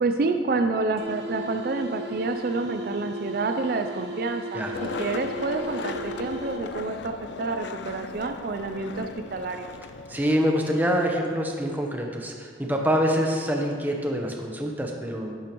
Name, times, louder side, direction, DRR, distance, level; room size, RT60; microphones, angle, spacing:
voice 1, 0.0-9.7, right 3 dB, 50° right, 6 dB, 0.4 m, -28 dB
sound 1, 1.0-6.9, equal, 70° right, 1.0 m, -36 dB
Skateboard, 4.7-10.4, left 5 dB, 65° left, 0.4 m, -37 dB
voice 2, 10.1-15.4, equal, 10° right, 1 dB, 0.8 m, -25 dB
10.0 x 10.0 x 3.0 m, 2.1 s
head